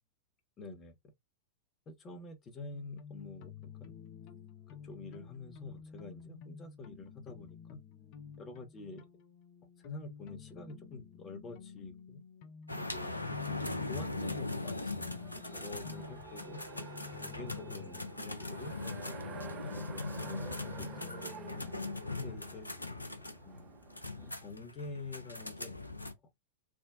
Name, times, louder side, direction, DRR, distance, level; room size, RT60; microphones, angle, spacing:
voice 1, 0.6-0.9 1.9-4.0 4.7-7.8 8.4-9.0 9.8-12.2 12.7-13.1 13.8-21.3 22.2-22.7 23.4-23.8 24.3-25.8, left 3 dB, 25° left, 0.9 m, -47 dB
sound 1, 2.7-22.0, left 6 dB, 45° left, 0.6 m, -51 dB
sound 2, 12.7-26.1, left 3 dB, 85° left, 0.5 m, -40 dB
Race car auto racing, 14.3-24.3, right 9 dB, 30° right, 0.4 m, -51 dB
3.6 x 2.1 x 2.4 m
figure-of-eight pair, 95°, 0 cm